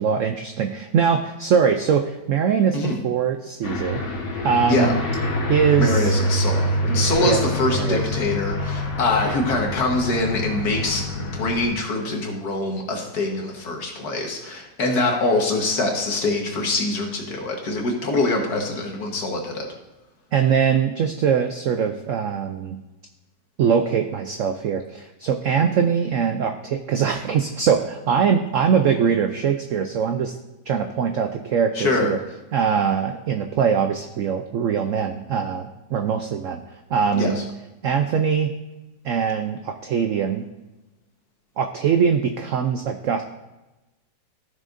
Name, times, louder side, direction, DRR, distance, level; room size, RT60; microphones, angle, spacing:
voice 1, 0.0-5.0 5.5-6.1 7.2-7.4 7.7-8.1 20.3-22.8 23.6-30.4 30.7-32.2 32.5-36.6 36.9-37.3 37.8-38.5 39.0-40.5 41.6-43.2, right 7 dB, 75° right, 6 dB, 0.7 m, -22 dB
Aircraft, 3.6-11.7, equal, 45° left, 1.4 m, -26 dB
voice 2, 5.8-19.7 31.8-32.1 37.1-37.3, left 2 dB, 60° left, 1 dB, 1.8 m, -24 dB
14.5 x 6.4 x 2.6 m, 1.0 s
omnidirectional pair, 1.9 m